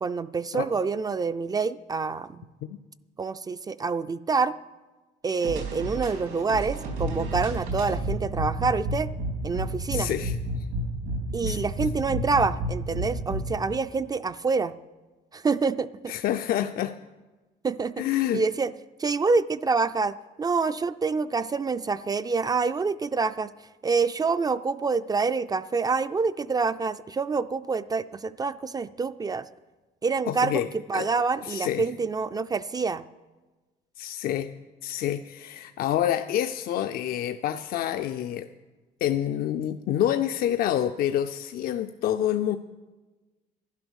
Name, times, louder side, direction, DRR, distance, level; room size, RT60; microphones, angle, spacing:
voice 1, 0.0-2.5 3.2-4.6 5.2-9.1 9.4-10.1 11.3-14.7 15.3-16.1 17.6-18.0 18.3-18.7 19.0-23.5 23.8-29.5 30.0-30.6 30.9-33.0, right 4 dB, 25° right, 13 dB, 0.3 m, -27 dB
sound 1, 5.4-13.4, right 1 dB, 90° right, 3.5 m, -31 dB
voice 2, 9.9-10.4 11.5-11.9 16.1-17.0 18.0-18.4 30.3-30.7 30.9-31.1 31.4-31.9 34.0-34.5 34.8-38.5 39.0-42.6, left 11 dB, 60° left, 8 dB, 0.5 m, -27 dB
11.5 x 11.0 x 6.3 m, 1.2 s
cardioid pair, 110°, 17 cm